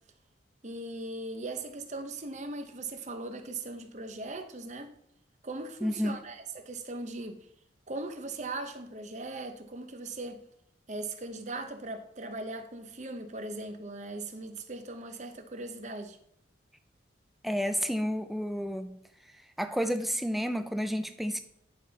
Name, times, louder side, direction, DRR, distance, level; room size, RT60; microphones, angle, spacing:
voice 1, 0.6-4.9 5.4-7.5 7.9-10.4 10.9-16.2, right 2 dB, 35° right, 0.8 m, -39 dB
voice 2, 5.8-6.2 17.4-19.0 19.6-21.4, equal, ahead, 0.4 m, -30 dB
9.9 x 5.6 x 4.1 m
head